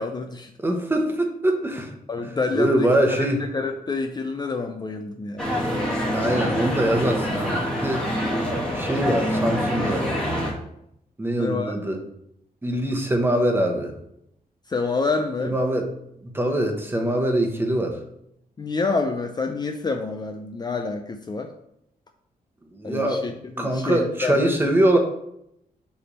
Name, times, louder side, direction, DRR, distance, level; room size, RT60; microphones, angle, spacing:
voice 1, 0.0-0.5 2.1-5.5 9.4-9.8 11.4-11.8 14.7-15.5 18.6-21.5 22.8-24.7, left 4 dB, 30° left, 5 dB, 0.5 m, -28 dB
voice 2, 0.6-1.9 2.5-3.4 6.1-8.0 8.7-10.1 11.2-12.0 12.6-13.9 15.4-15.8 16.3-18.0 22.7-23.2 23.6-25.0, right 1 dB, 15° right, 3 dB, 1.0 m, -23 dB
sound 1, 5.4-10.5, equal, 5° left, 1.5 m, -25 dB
7.0 x 3.4 x 5.2 m, 0.77 s
wide cardioid pair, 140°, 15 cm